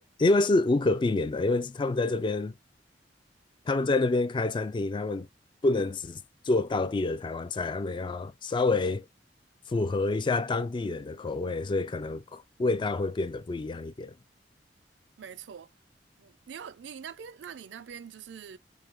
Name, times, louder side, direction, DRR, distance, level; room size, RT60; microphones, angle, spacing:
voice 1, 0.0-2.5 3.7-5.3 5.6-6.2 6.5-9.1 9.7-14.1, left 2 dB, 25° left, 0.3 m, -27 dB
voice 2, 15.2-15.7 16.2-18.6, right 7 dB, 85° right, 0.4 m, -43 dB
4.7 x 2.6 x 3.6 m
head